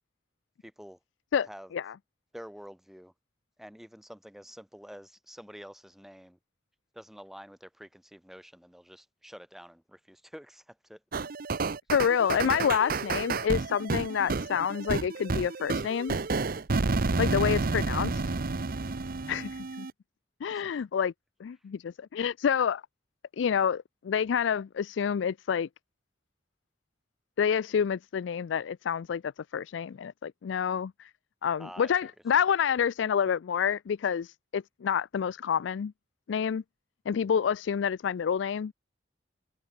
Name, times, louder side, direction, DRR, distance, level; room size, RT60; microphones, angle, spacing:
voice 1, 0.6-1.0 1.4-1.7 2.3-3.1 3.6-6.4 6.9-11.0 20.5-20.9 31.6-32.5, equal, ahead, 1.5 m, -48 dB
sound 1, 11.1-19.9, right 3 dB, 50° right, 0.8 m, -30 dB
voice 2, 11.9-16.2 17.2-18.2 19.3-19.9 20.4-21.1 21.4-22.8 23.4-25.7 27.4-31.1 31.4-35.9 36.3-36.6 37.1-38.7, left 7 dB, 75° left, 0.4 m, -28 dB
head